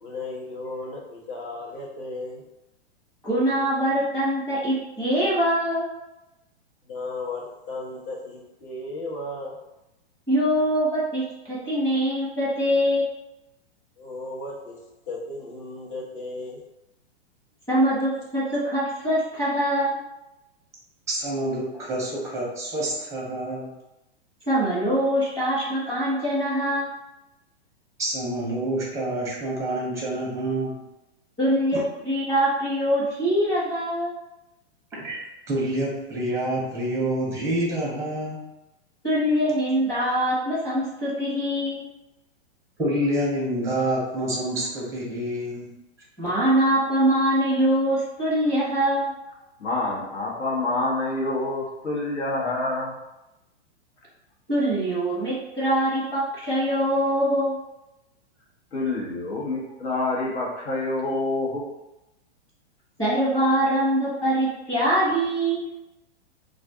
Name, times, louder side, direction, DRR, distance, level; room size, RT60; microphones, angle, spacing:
voice 1, 0.0-2.4 6.9-9.6 14.0-14.8 15.1-16.6, left 2 dB, 50° left, -3 dB, 1.1 m, -35 dB
voice 2, 3.2-5.9 10.3-13.1 17.7-20.0 24.5-26.9 31.4-34.1 39.0-41.9 46.2-49.1 54.5-57.6 63.0-65.7, equal, 10° left, -8 dB, 1.0 m, -23 dB
voice 3, 21.1-23.7 28.0-30.8 31.7-31.8 34.9-38.4 42.8-45.7, right 1 dB, 10° right, -4 dB, 0.6 m, -27 dB
voice 4, 49.6-53.0 58.7-61.6, left 2 dB, 85° left, -4 dB, 1.3 m, -27 dB
2.5 x 2.4 x 3.5 m, 0.94 s
hypercardioid pair, 150°, 33 cm